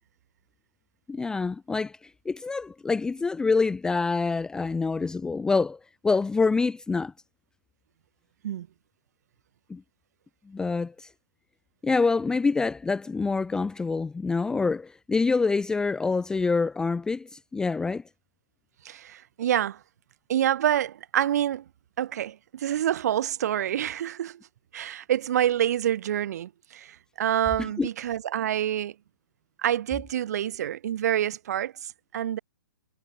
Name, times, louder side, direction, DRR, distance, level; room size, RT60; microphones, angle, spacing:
voice 1, 1.1-2.0 2.3-7.1 9.7-9.8 10.5-11.1 11.8-18.0 27.6-27.9, left 4 dB, 5° left, 0.5 m, -26 dB
voice 2, 18.8-19.8 20.3-21.6 22.0-24.4 24.7-28.9 29.6-32.4, right 11 dB, 50° right, 2.1 m, -27 dB
figure-of-eight pair, 120°, 11 cm